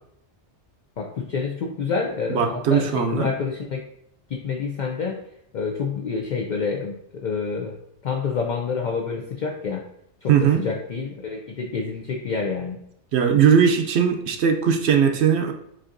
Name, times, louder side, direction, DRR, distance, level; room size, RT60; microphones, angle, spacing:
voice 1, 1.0-3.8 4.3-5.2 5.5-6.9 7.2-7.7 8.0-9.8 10.2-12.8, left 5 dB, 60° left, 1 dB, 0.5 m, -28 dB
voice 2, 2.3-3.3 10.3-10.6 13.1-15.5, right 7 dB, 70° right, 4 dB, 0.8 m, -19 dB
7.3 x 2.7 x 2.5 m, 0.77 s
omnidirectional pair, 1.2 m